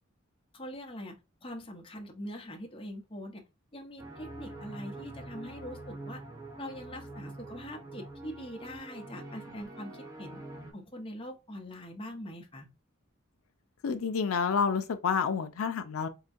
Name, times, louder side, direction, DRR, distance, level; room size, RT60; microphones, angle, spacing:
voice 1, 0.5-1.2 1.4-3.4 3.7-6.2 6.6-10.4 10.7-12.7, equal, 25° left, 0.9 m, -43 dB
sound 1, 4.0-10.7, right 2 dB, 15° right, 1.1 m, -45 dB
voice 2, 13.8-16.1, left 6 dB, 85° left, 0.5 m, -29 dB
4.7 x 2.2 x 2.5 m
head